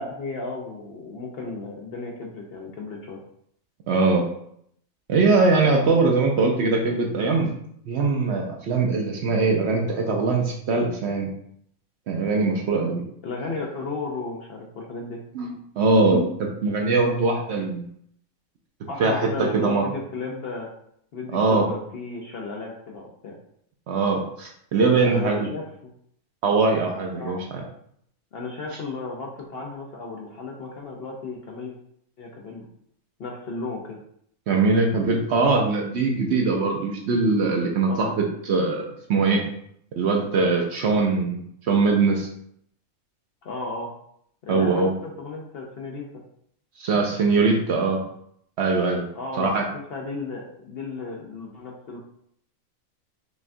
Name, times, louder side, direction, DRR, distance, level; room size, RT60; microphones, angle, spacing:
voice 1, 0.0-3.2 5.6-5.7 13.2-15.2 18.9-20.7 21.1-23.4 25.0-25.9 27.1-27.4 28.3-31.7 32.2-32.7 33.2-34.0 37.9-38.1 43.4-43.9 44.4-46.1 49.1-52.0, left 3 dB, 60° left, 0 dB, 0.7 m, -34 dB
voice 2, 3.9-4.2 5.1-7.5 7.9-11.3 12.1-13.0 15.3-17.9 19.0-19.9 21.3-21.7 23.9-25.5 26.4-27.6 34.5-38.8 39.1-39.4 40.0-42.3 44.5-44.9 46.8-48.0 48.6-49.0 49.4-49.6, right 3 dB, 65° right, 1 dB, 0.7 m, -22 dB
5.4 x 2.3 x 2.5 m, 0.69 s
omnidirectional pair, 1.4 m